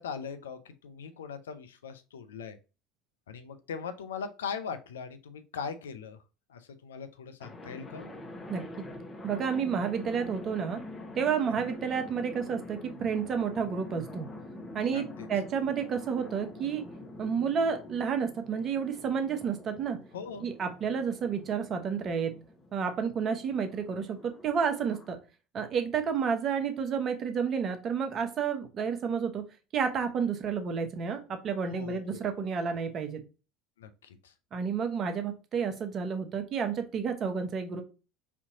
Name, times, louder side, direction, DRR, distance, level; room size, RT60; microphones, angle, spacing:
voice 1, 0.0-2.6 3.3-6.2 6.5-8.1 11.5-11.7 14.9-15.3 20.1-20.5 31.7-32.5 33.8-34.3, left 6 dB, 85° left, 9 dB, 0.5 m, -40 dB
sound 1, 7.4-25.2, left 1 dB, 20° left, 1.0 m, -46 dB
voice 2, 9.2-10.8 11.2-14.3 14.7-16.9 17.2-20.0 20.4-22.3 22.7-25.2 25.5-29.4 29.7-33.2 34.5-37.8, right 6 dB, 45° right, 7 dB, 0.8 m, -30 dB
4.3 x 2.8 x 2.6 m, 0.32 s
hypercardioid pair, 75°, 0 cm